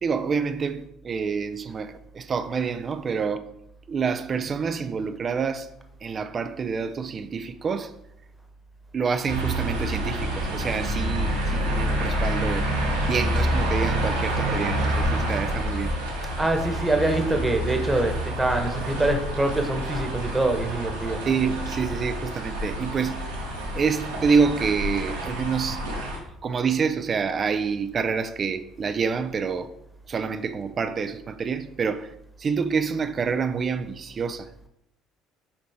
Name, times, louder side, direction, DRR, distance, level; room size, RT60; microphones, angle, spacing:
voice 1, 0.0-3.4 3.9-5.7 6.0-7.9 8.9-12.7 13.1-15.9 21.3-23.3 23.7-25.8 26.4-29.7 30.1-32.1 32.4-34.5, right 5 dB, 35° right, 0.5 m, -27 dB
sound 1, 9.3-26.2, right 1 dB, 80° right, 1.7 m, -28 dB
voice 2, 16.4-21.2, right 2 dB, 15° right, 1.2 m, -24 dB
7.1 x 4.9 x 3.6 m
figure-of-eight pair, 55°, 0 cm